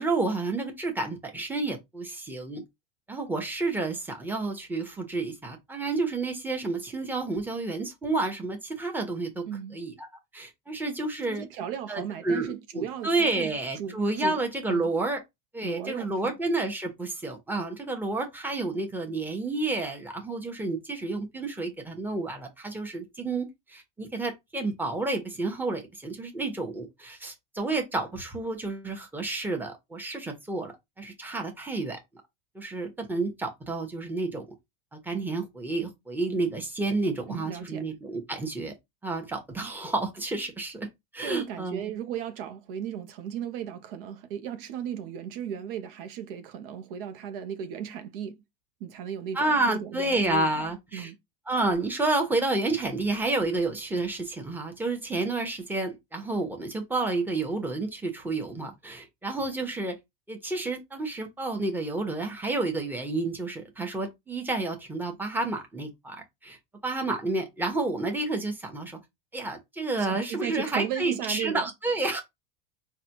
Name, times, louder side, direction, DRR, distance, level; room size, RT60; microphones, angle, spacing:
voice 1, 0.0-2.6 3.1-9.5 9.7-10.1 10.3-11.4 11.9-15.2 15.5-32.0 32.5-34.5 34.9-38.7 39.0-40.9 41.1-41.9 49.3-51.1 51.5-60.0 60.3-66.6 66.8-69.0 69.3-72.2, right 2 dB, 5° right, 1.0 m, -30 dB
voice 2, 9.5-9.8 11.3-14.9 15.6-16.3 37.3-37.9 39.6-39.7 41.2-48.4 48.8-51.2 70.0-71.7, right 9 dB, 70° right, 0.7 m, -36 dB
3.9 x 2.3 x 2.9 m
supercardioid pair, 110°, 29 cm